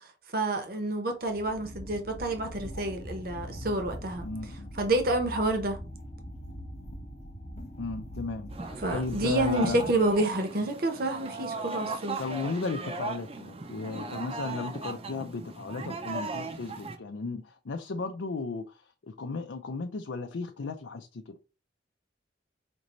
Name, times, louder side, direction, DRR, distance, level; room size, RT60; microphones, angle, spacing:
voice 1, 0.3-4.3 4.8-5.8 8.8-12.2, right 2 dB, 50° right, 0.8 m, -28 dB
sound 1, 1.2-10.3, equal, 35° left, 0.9 m, -42 dB
voice 2, 4.2-4.7 7.8-9.9 12.2-21.3, left 4 dB, 80° left, 0.5 m, -35 dB
sound 2, 8.5-17.0, right 3 dB, 30° right, 0.5 m, -37 dB
5.2 x 2.6 x 3.0 m
head